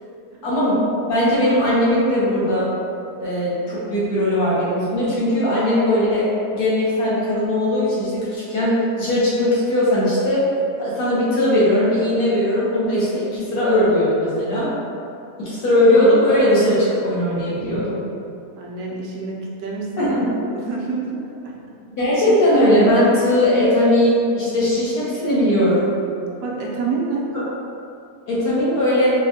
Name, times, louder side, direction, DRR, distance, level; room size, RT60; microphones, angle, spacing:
voice 1, 0.4-0.8 1.1-2.7 3.2-10.4 10.8-14.7 15.4-18.0 20.0-20.2 22.0-25.9 28.3-29.1, left 1 dB, 75° left, -9 dB, 1.3 m, -19 dB
voice 2, 18.6-21.7 26.4-27.3, right 4 dB, 70° right, -3 dB, 0.9 m, -28 dB
4.3 x 2.1 x 2.7 m, 2.5 s
omnidirectional pair, 1.7 m